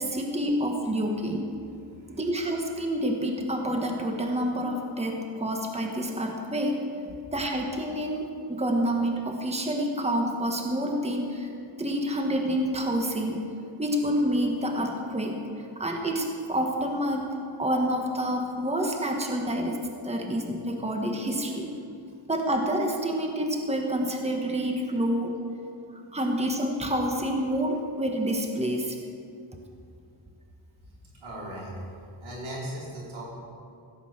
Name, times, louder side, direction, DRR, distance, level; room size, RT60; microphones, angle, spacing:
voice 1, 0.0-1.5 2.1-11.5 11.8-13.4 13.8-21.7 22.3-25.4 25.9-29.0, equal, 15° right, 2 dB, 1.4 m, -28 dB
voice 2, 1.9-2.2 30.8-31.8 32.2-33.3, right 1 dB, 90° right, -5 dB, 4.1 m, -38 dB
16.0 x 8.1 x 6.6 m, 2.5 s
wide cardioid pair, 105°, 46 cm